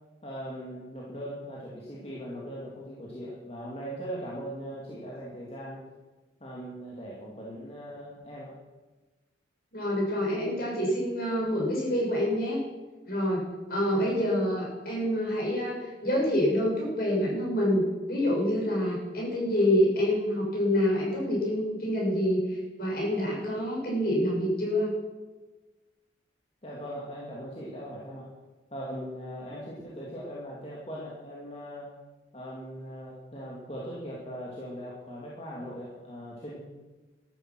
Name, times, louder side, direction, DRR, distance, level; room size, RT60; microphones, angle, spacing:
voice 1, 0.2-5.8 6.4-8.5 13.9-14.0 26.6-28.3 28.7-31.9 32.3-36.6, equal, 30° left, -5 dB, 2.6 m, -40 dB
voice 2, 9.7-12.6 13.0-13.4 13.7-24.9, equal, 50° left, -3 dB, 6.7 m, -27 dB
13.5 x 13.0 x 6.2 m, 1.2 s
head